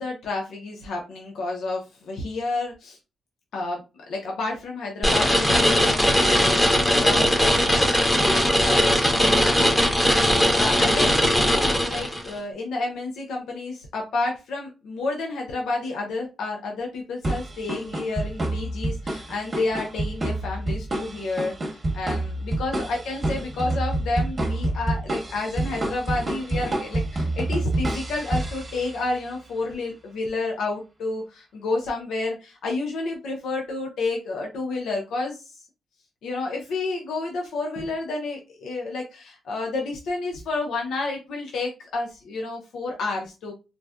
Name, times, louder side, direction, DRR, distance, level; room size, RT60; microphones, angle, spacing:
voice 1, 0.0-3.0 3.5-35.6 36.2-43.5, left 3 dB, 85° left, 0 dB, 0.6 m, -30 dB
sound 1, 5.0-12.3, equal, 15° left, 0.9 m, -19 dB
sound 2, 17.2-29.2, right 1 dB, 35° right, 1.0 m, -28 dB
3.9 x 2.1 x 2.3 m, 0.29 s
cardioid pair, 80°, 0 cm